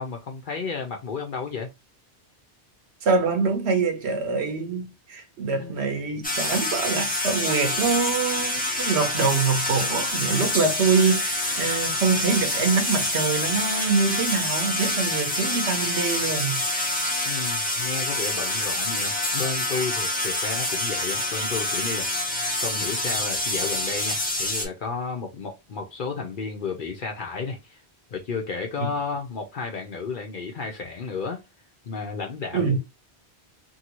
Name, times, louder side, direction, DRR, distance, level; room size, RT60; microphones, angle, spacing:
voice 1, 0.0-1.7 5.5-5.8 17.3-22.1 22.6-27.8 28.1-31.4 31.8-32.8, left 5 dB, 55° left, 0.8 m, -32 dB
voice 2, 3.0-17.0 28.8-28.9 32.5-32.8, right 5 dB, 75° right, 1.1 m, -25 dB
sound 1, 6.2-24.7, left 1 dB, 10° left, 0.5 m, -27 dB
2.7 x 2.7 x 2.9 m
omnidirectional pair, 1.1 m